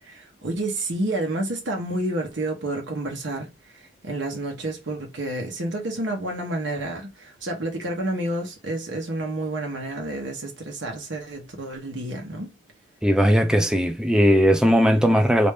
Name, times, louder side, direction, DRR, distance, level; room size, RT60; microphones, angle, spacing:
voice 1, 0.0-3.5 3.7-12.5, right 1 dB, 70° right, 0.9 m, -29 dB
voice 2, 13.0-15.5, equal, 5° right, 0.3 m, -18 dB
3.2 x 2.6 x 3.4 m
head